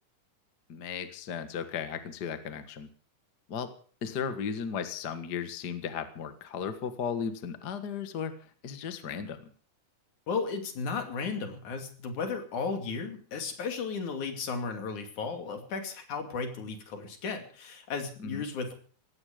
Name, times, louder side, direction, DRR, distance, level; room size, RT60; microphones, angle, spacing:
voice 1, 0.7-2.9 3.5-3.7 4.0-8.3 8.6-9.5 18.2-18.5, left 7 dB, 40° left, 9 dB, 1.8 m, -35 dB
voice 2, 10.3-18.7, left 5 dB, 80° left, 6 dB, 4.1 m, -34 dB
18.0 x 15.5 x 5.1 m, 0.43 s
omnidirectional pair, 3.4 m